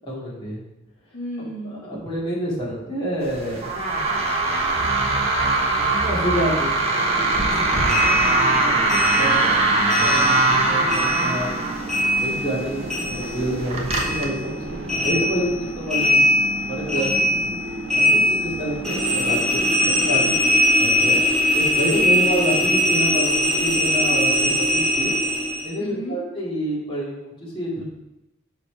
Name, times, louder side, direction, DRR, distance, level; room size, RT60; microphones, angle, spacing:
voice 1, 0.1-0.6 1.6-3.6 4.6-4.8 5.4-5.6 5.9-6.8 8.6-11.5 11.9-16.2 16.7-17.0 18.0-19.4 19.9-25.2 25.6-27.8, equal, 25° left, -7 dB, 2.4 m, -28 dB
voice 2, 1.1-1.8 7.4-8.6 16.9-17.3 21.9-22.2 25.8-26.2, equal, 75° left, -3 dB, 1.4 m, -34 dB
sound 1, 3.2-14.2, right 2 dB, 30° right, 1.1 m, -22 dB
sound 2, 6.8-20.5, right 2 dB, 85° right, 1.1 m, -34 dB
sound 3, 7.9-10.6 10.9-13.6 13.9-25.7, equal, 5° left, 2.2 m, -21 dB
6.4 x 5.1 x 4.5 m, 0.93 s
head